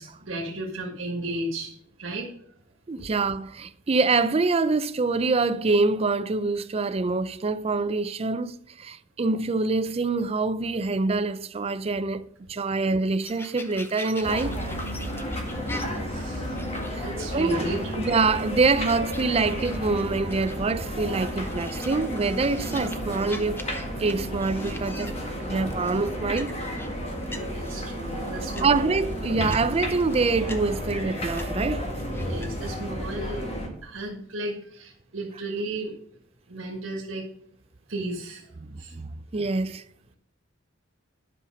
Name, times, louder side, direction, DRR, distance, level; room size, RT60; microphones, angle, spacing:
voice 1, 0.0-2.3 3.0-3.1 15.7-16.6 17.0-18.0 27.5-28.8 29.2-29.4 32.2-33.5 33.8-35.9 36.5-37.3 37.9-38.5 38.8-38.9, right 1 dB, 85° right, 1.6 m, -34 dB
voice 2, 2.9-14.6 16.9-17.0 17.3-17.7 18.0-23.6 24.0-25.2 25.4-26.5 28.6-31.9 38.7-39.8, right 3 dB, 30° right, 0.5 m, -25 dB
sound 1, 13.2-32.7, left 1 dB, 10° left, 0.9 m, -45 dB
sound 2, 14.2-33.7, equal, 30° left, 1.9 m, -32 dB
sound 3, 23.6-28.9, right 3 dB, 60° right, 1.2 m, -45 dB
10.0 x 5.7 x 5.2 m
head